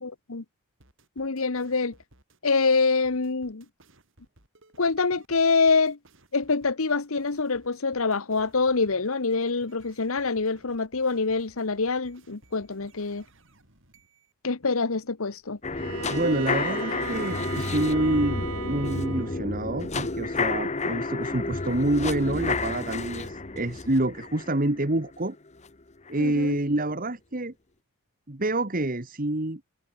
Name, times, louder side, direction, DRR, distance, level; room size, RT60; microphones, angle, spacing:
voice 1, 0.0-0.4 1.2-1.9 2.4-3.6 4.8-6.0 6.3-13.2 14.4-15.6 26.2-26.6, left 4 dB, 70° left, 1.1 m, -25 dB
sound 1, 0.8-14.3, right 2 dB, 60° right, 6.3 m, -59 dB
sound 2, 15.6-25.7 26.1-26.2, left 3 dB, 30° left, 1.1 m, -31 dB
Bowed string instrument, 15.7-19.5, right 4 dB, 80° right, 2.6 m, -36 dB
voice 2, 16.1-25.4 26.1-27.5 28.3-29.6, right 1 dB, 40° right, 1.6 m, -27 dB
head